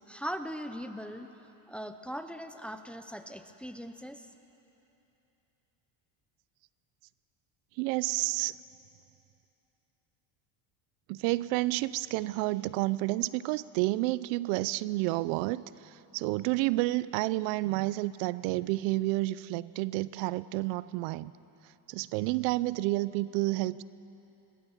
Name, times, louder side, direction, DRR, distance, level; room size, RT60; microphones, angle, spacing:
voice 1, 0.1-1.3 1.7-4.2, equal, ahead, 9 dB, 0.6 m, -40 dB
voice 2, 7.8-8.5 11.1-21.3 21.9-23.8, right 19 dB, 85° right, 19 dB, 0.6 m, -30 dB
22.0 x 17.5 x 7.2 m, 3.0 s
cardioid pair, 135°, 46 cm